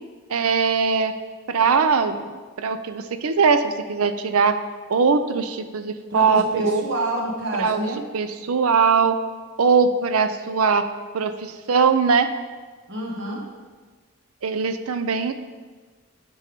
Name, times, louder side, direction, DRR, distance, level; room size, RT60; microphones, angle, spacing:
voice 1, 0.3-1.1 1.5-2.3 2.6-4.6 4.9-6.8 7.6-9.2 9.6-10.9 11.1-12.3 14.4-15.3, right 5 dB, 75° right, 10 dB, 0.5 m, -21 dB
voice 2, 6.1-8.0 12.9-13.4, right 1 dB, 55° right, -1 dB, 1.2 m, -27 dB
8.2 x 5.4 x 5.2 m, 1.4 s
head